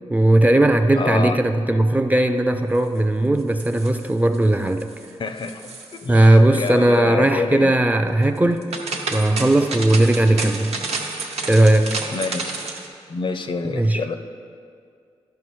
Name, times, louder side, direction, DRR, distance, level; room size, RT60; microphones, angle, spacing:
voice 1, 0.1-4.9 6.1-8.7 9.1-10.7 11.5-12.0 13.7-14.0, right 1 dB, 15° right, 7 dB, 0.3 m, -17 dB
voice 2, 1.0-1.4 5.2-5.7 6.0-7.8 12.1-12.5 13.1-14.2, left 4 dB, 50° left, 8 dB, 0.5 m, -27 dB
sound 1, 3.4-4.4 4.7-5.1 5.4-6.3 6.6-6.7 8.4-12.9, right 3 dB, 85° right, 0.8 m, -30 dB
11.5 x 5.4 x 3.1 m, 2.3 s
cardioid pair, 75°, 11 cm